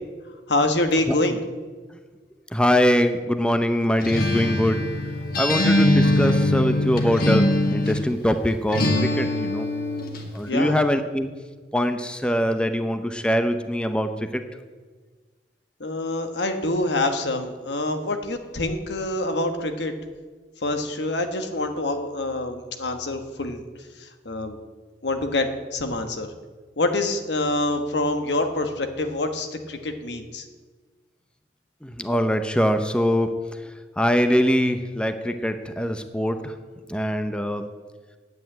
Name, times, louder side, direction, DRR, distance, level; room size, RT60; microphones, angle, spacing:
voice 1, 0.5-1.4 10.5-10.8 15.8-19.9 20.6-23.6 24.0-24.6 25.0-26.3 26.8-30.4, left 2 dB, 75° left, 6 dB, 1.3 m, -26 dB
voice 2, 2.5-4.8 5.4-9.7 10.3-11.3 11.7-14.4 31.8-33.3 34.0-36.5 36.9-37.7, equal, 5° left, 8 dB, 0.6 m, -23 dB
Acoustic guitar, 4.0-8.1 8.7-10.3, left 1 dB, 55° left, 1.7 m, -22 dB
9.4 x 8.3 x 9.0 m, 1.4 s
head